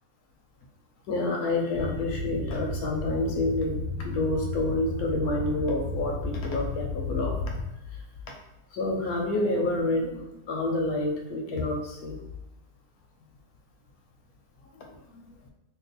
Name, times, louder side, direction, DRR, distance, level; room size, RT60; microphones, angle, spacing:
voice 1, 1.1-7.4 8.7-12.1 15.1-15.2, left 2 dB, 70° left, 1 dB, 1.0 m, -28 dB
sound 1, 1.7-7.7, left 2 dB, 40° right, 1.3 m, -34 dB
2.9 x 2.2 x 4.1 m, 0.96 s
omnidirectional pair, 1.8 m